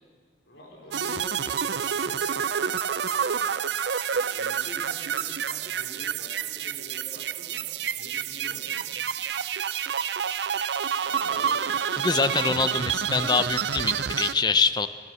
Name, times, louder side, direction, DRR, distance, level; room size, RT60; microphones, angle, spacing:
voice 1, 0.5-2.7 3.1-3.4 4.1-7.6 8.0-8.9 11.0-11.6 11.9-12.6, left 1 dB, 90° left, -1 dB, 4.0 m, -45 dB
sound 1, 0.9-14.3, right 8 dB, 75° right, 0.5 m, -28 dB
voice 2, 12.0-14.9, left 4 dB, 25° left, 12 dB, 0.7 m, -24 dB
29.0 x 16.5 x 6.3 m, 2.1 s
head